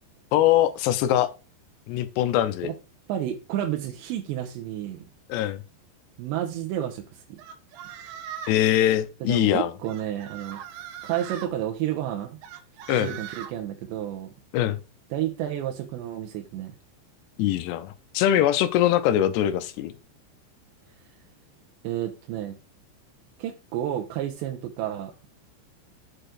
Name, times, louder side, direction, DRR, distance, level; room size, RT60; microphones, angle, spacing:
voice 1, 0.3-1.3 1.9-2.7 5.3-5.6 8.5-9.7 12.9-13.2 14.5-14.8 17.4-19.9, left 12 dB, 80° left, 2.8 m, -22 dB
voice 2, 3.1-5.0 6.2-7.4 9.2-10.6 11.0-12.4 13.0-14.3 15.1-16.7 21.8-22.5 23.4-25.1, right 11 dB, 90° right, 3.1 m, -31 dB
sound 1, 7.4-8.6 9.8-11.5 12.4-13.5, right 9 dB, 70° right, 2.9 m, -40 dB
7.7 x 4.6 x 4.9 m
omnidirectional pair, 5.1 m